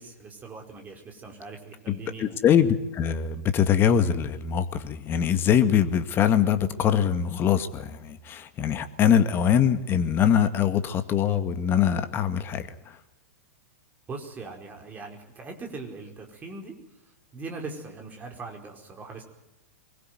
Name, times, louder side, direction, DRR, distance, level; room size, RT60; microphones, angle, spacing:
voice 1, 0.0-2.4 14.1-16.8 17.3-19.2, right 3 dB, 20° right, 2 dB, 4.8 m, -40 dB
voice 2, 1.9-12.7, left 8 dB, 30° left, 10 dB, 2.0 m, -23 dB
24.5 x 21.5 x 9.5 m, 0.89 s
figure-of-eight pair, 100°, 8 cm